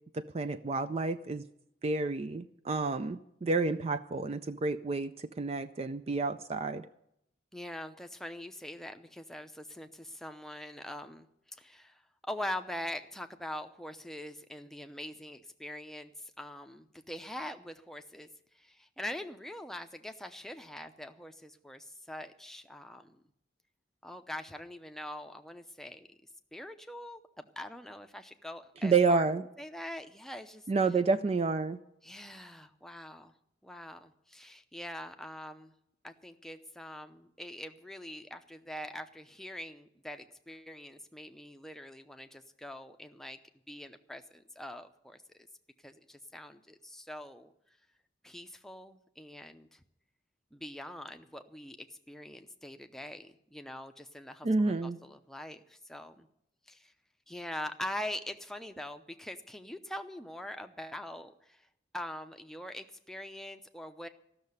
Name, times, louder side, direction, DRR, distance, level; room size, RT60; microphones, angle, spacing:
voice 1, 0.1-1.4 1.8-6.9 28.8-29.4 30.7-31.8 54.4-55.0, right 4 dB, 35° right, 12 dB, 0.4 m, -29 dB
voice 2, 7.5-23.2 24.0-26.2 26.5-29.3 29.6-30.7 32.0-33.4 33.6-35.7 36.0-43.4 43.7-45.2 45.8-47.5 48.2-49.8 50.5-56.3 56.7-56.9 57.3-61.7 61.9-64.1, left 1 dB, ahead, 6 dB, 0.7 m, -43 dB
14.0 x 6.6 x 9.5 m, 0.79 s
head